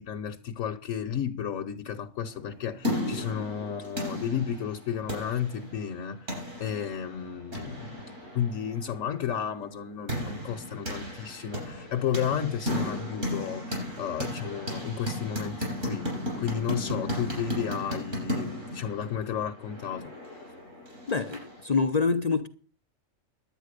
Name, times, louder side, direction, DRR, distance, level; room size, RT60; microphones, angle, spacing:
voice 1, 0.0-8.0 8.3-16.1 16.4-20.4, left 8 dB, 70° left, 1.3 m, -33 dB
sound 1, 2.4-21.6, left 1 dB, 60° right, 7.0 m, -35 dB
voice 2, 21.1-22.5, left 4 dB, 40° left, 0.6 m, -26 dB
11.5 x 9.1 x 6.5 m
omnidirectional pair, 1.5 m